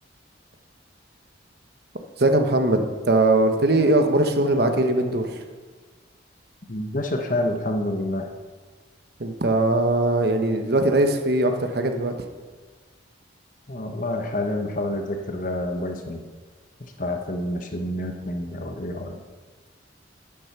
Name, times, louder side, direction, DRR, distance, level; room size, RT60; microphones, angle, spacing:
voice 1, 2.2-5.4 9.2-12.1, right 2 dB, 55° right, 5 dB, 1.1 m, -20 dB
voice 2, 6.7-8.3 13.7-16.2 16.8-19.2, left 1 dB, 45° left, 4 dB, 1.1 m, -28 dB
10.5 x 10.0 x 6.0 m, 1.4 s
head